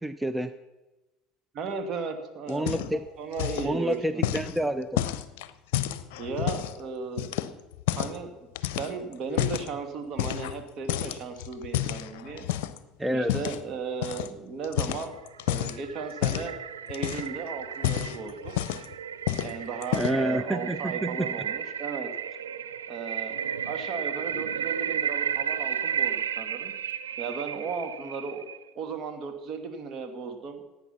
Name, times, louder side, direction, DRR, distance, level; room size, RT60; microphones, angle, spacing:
voice 1, 0.0-0.5 2.5-3.0 3.6-5.0 13.0-13.3 19.9-21.3, right 1 dB, 5° right, 11 dB, 0.6 m, -28 dB
voice 2, 1.5-4.2 6.2-7.4 8.0-8.3 8.8-12.5 13.1-15.2 15.5-16.6 16.9-18.5 19.4-22.1 22.9-23.4 23.7-26.7 27.2-28.4 28.7-30.6, right 5 dB, 45° right, 6 dB, 2.2 m, -35 dB
sound 1, 2.5-3.1 3.3-3.7 4.2-6.8 7.2-8.2 8.6-9.7 10.2-10.6 10.9-12.8 13.3-13.6 14.0-14.3 14.6-15.8 16.2-16.5 16.9-17.4 17.7-18.9 19.3-19.5 19.8-20.3, left 13 dB, 70° left, 0.7 m, -30 dB
sound 2, 15.2-28.6, right 8 dB, 90° right, 0.6 m, -33 dB
17.0 x 8.9 x 5.8 m, 1.1 s
hypercardioid pair, 75°, 0 cm